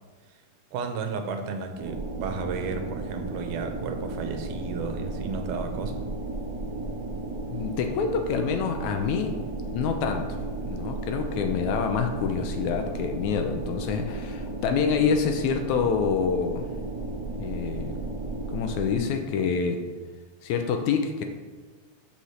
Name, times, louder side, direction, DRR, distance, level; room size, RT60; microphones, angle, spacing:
voice 1, 0.7-6.1, right 5 dB, 80° right, 6 dB, 2.3 m, -33 dB
sound 1, 1.8-19.0, right 2 dB, 30° right, 0.6 m, -34 dB
voice 2, 7.5-9.3 9.7-16.7 17.4-18.0 18.5-19.8 20.4-21.2, left 6 dB, 75° left, 5 dB, 1.9 m, -27 dB
6.9 x 5.8 x 6.3 m, 1.4 s
omnidirectional pair, 3.7 m